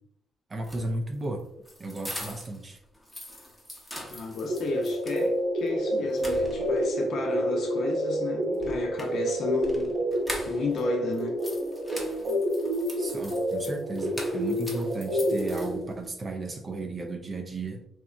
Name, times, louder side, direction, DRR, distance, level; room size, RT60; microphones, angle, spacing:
sound 1, 0.5-2.6 2.9-5.3 5.7-5.8 6.1-6.9 8.5-10.8 11.1-16.1, left 1 dB, 5° left, 0.7 m, -42 dB
voice 1, 0.5-1.4 1.8-2.8 13.0-17.9, right 2 dB, 35° right, 0.4 m, -34 dB
voice 2, 4.1-10.0 10.5-11.4, left 3 dB, 65° left, 0.5 m, -33 dB
sound 2, 4.5-15.8, equal, 90° right, 1.2 m, -28 dB
2.8 x 2.2 x 2.4 m
cardioid pair, 90°, 0 cm